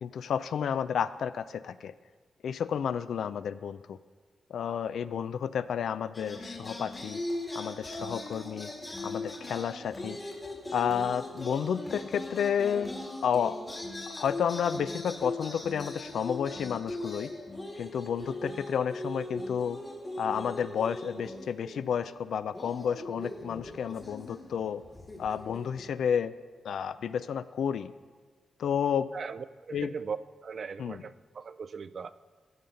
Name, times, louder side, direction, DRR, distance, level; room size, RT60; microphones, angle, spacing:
voice 1, 0.0-1.9 2.4-4.0 4.5-7.2 7.5-8.7 9.0-10.2 10.7-12.9 13.2-13.6 14.2-17.3 17.8-19.8 20.2-24.8 25.2-26.3 26.6-27.9 28.6-29.1 29.7-29.9 30.8-31.0, left 8 dB, 80° left, 15 dB, 0.3 m, -31 dB
sound 1, 6.1-22.2 22.5-26.0, left 1 dB, 25° left, 1.6 m, -39 dB
voice 2, 29.1-30.2 30.4-32.1, right 6 dB, 50° right, 14 dB, 0.3 m, -39 dB
15.0 x 5.6 x 5.1 m, 1.5 s
cardioid pair, 110°, 0 cm